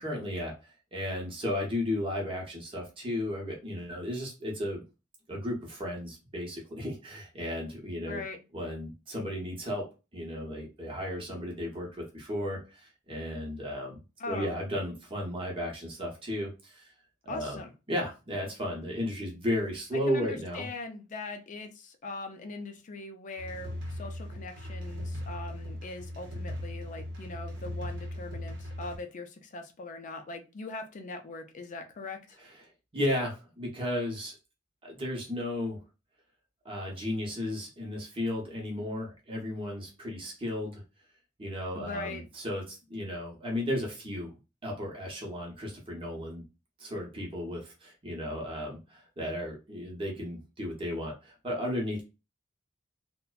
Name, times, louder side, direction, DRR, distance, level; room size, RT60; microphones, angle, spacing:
voice 1, 0.0-4.8 5.3-8.2 8.5-9.9 10.1-14.0 14.3-16.9 17.3-17.6 17.9-20.7 32.9-34.3 34.8-35.8 36.6-40.8 41.4-44.3 44.6-46.4 46.8-52.0, left 1 dB, 25° right, 0.8 m, -34 dB
voice 2, 8.1-8.4 14.2-14.6 17.3-17.7 19.9-32.4 41.7-42.2, left 3 dB, 40° left, 0.4 m, -41 dB
sound 1, 23.4-29.0, left 1 dB, 65° right, 0.8 m, -38 dB
2.5 x 2.1 x 2.3 m
head